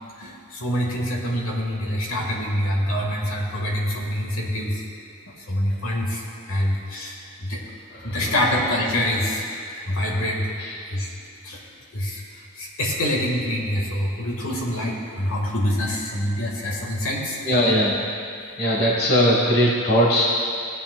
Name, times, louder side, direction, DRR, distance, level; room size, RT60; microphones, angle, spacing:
voice 1, 0.2-4.8 5.5-7.6 8.0-9.5 9.9-10.5 10.9-11.1 11.4-11.6 11.9-12.2 12.5-17.4 18.7-18.9, equal, 65° left, -1 dB, 1.6 m, -25 dB
voice 2, 17.4-18.0 18.6-20.2, equal, 45° left, -3 dB, 1.3 m, -19 dB
17.5 x 8.5 x 2.2 m, 2.5 s
head